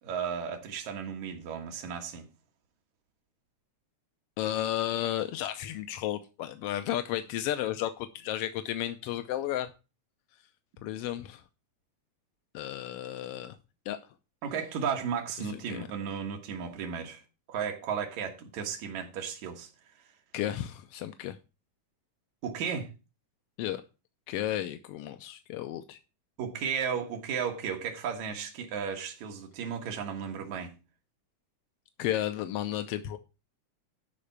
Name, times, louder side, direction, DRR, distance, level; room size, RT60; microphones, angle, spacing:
voice 1, 0.0-2.3 14.4-17.2 17.5-19.7 22.4-22.9 26.4-30.7, right 7 dB, 75° right, 2.9 m, -34 dB
voice 2, 4.4-9.7 10.8-11.4 12.5-13.6 13.9-14.0 15.4-15.9 20.3-21.4 23.6-23.8 24.3-26.0 32.0-33.2, left 12 dB, 75° left, 1.4 m, -33 dB
11.5 x 4.4 x 7.0 m
omnidirectional pair, 3.3 m